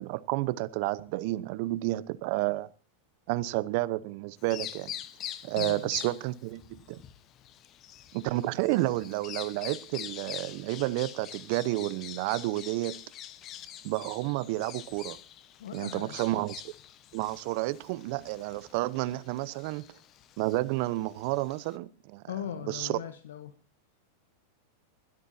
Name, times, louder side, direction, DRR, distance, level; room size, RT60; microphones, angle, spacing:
voice 1, 0.0-2.7 3.3-4.9 5.4-7.0 8.1-13.0 13.8-15.2 15.7-16.7 17.1-19.8 20.4-22.2 22.7-23.0, right 18 dB, 55° right, 0.9 m, -31 dB
Bird vocalization bird call bird song, 4.4-21.7, left 11 dB, 40° left, 1.1 m, -45 dB
voice 2, 5.5-5.9 15.6-16.2 22.3-23.6, left 10 dB, 75° left, 1.2 m, -39 dB
27.5 x 12.5 x 2.8 m
hypercardioid pair, 105°, 0 cm